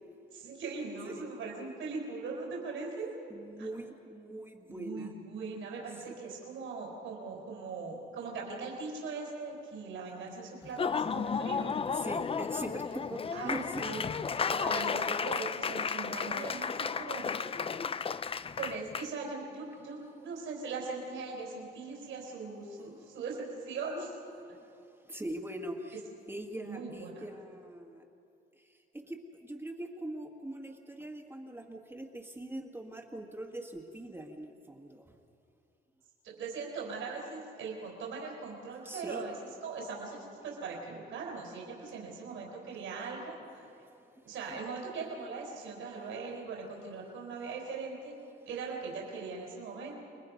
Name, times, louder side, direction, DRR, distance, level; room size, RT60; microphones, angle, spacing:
voice 1, 0.3-3.1 3.6-3.7 4.7-11.7 13.3-14.0 14.5-17.6 18.6-24.2 26.6-27.2 36.2-39.3 39.6-43.7 44.2-48.1 48.5-49.9, right 4 dB, 80° right, -1 dB, 4.6 m, -40 dB
voice 2, 3.3-5.1 5.9-6.1 11.9-13.8 14.1-14.2 25.1-26.0 26.3-28.0 28.9-35.1 38.8-39.2 44.5-44.6, right 1 dB, 10° right, 1 dB, 1.8 m, -42 dB
Laughter / Applause, 10.6-19.1, left 6 dB, 30° left, 0.5 m, -33 dB
29.5 x 21.0 x 5.3 m, 2.6 s
cardioid pair, 90°, 20 cm